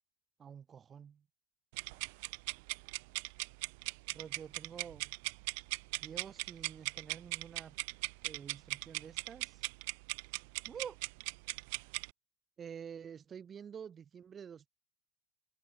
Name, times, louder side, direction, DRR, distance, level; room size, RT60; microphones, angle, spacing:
voice 1, 0.4-1.2 4.1-5.1 5.9-7.7 8.2-9.6 10.7-11.0 12.6-14.7, right 7 dB, 25° right, 3.3 m, -48 dB
sound 1, 1.7-12.1, right 29 dB, 65° right, 0.3 m, -40 dB
supercardioid pair, 135°, 0 cm